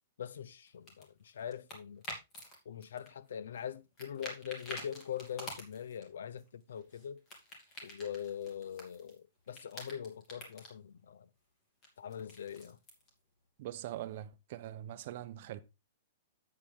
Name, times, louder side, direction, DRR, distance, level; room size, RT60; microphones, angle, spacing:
voice 1, 0.2-2.0 2.6-7.2 7.8-11.3 12.0-12.8, left 9 dB, 80° left, 0.7 m, -42 dB
sound 1, 0.7-2.5 2.8-3.7 4.0-6.0 6.4-9.2 9.4-10.7 11.8-13.1, left 1 dB, 20° left, 2.7 m, -48 dB
voice 2, 13.6-15.6, right 12 dB, 40° right, 0.8 m, -42 dB
8.2 x 7.6 x 3.6 m
hypercardioid pair, 170°, 0 cm